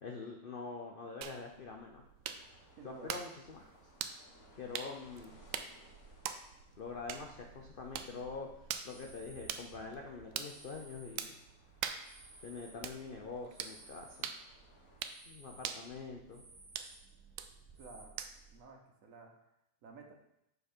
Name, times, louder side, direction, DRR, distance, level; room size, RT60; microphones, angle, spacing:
voice 1, 0.0-2.0 2.8-3.7 4.5-5.3 6.8-11.3 12.4-14.3 15.3-16.4, left 4 dB, 75° left, 1 dB, 0.5 m, -45 dB
sound 1, 1.2-18.6, right 8 dB, 75° right, 0.7 m, -46 dB
sound 2, 2.3-15.0, left 1 dB, 45° left, 1.5 m, -65 dB
voice 2, 2.8-3.1 17.8-18.1 18.5-19.3 19.8-20.1, right 4 dB, 55° right, 2 dB, 1.1 m, -52 dB
sound 3, 8.8-9.7 10.4-11.4 11.9-14.3 14.6-18.1, right 2 dB, 25° right, 1.2 m, -58 dB
6.5 x 5.3 x 4.4 m, 0.84 s
omnidirectional pair, 1.9 m